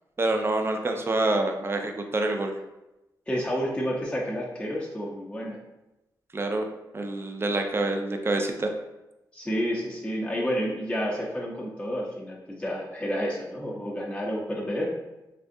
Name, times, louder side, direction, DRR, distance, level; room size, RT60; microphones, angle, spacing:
voice 1, 0.2-2.5 6.3-6.6 6.9-8.7, right 2 dB, 30° right, 4 dB, 0.5 m, -26 dB
voice 2, 3.3-5.6 9.3-14.9, equal, 15° left, -4 dB, 0.7 m, -30 dB
3.4 x 2.4 x 2.6 m, 0.97 s
cardioid pair, 55°, 8 cm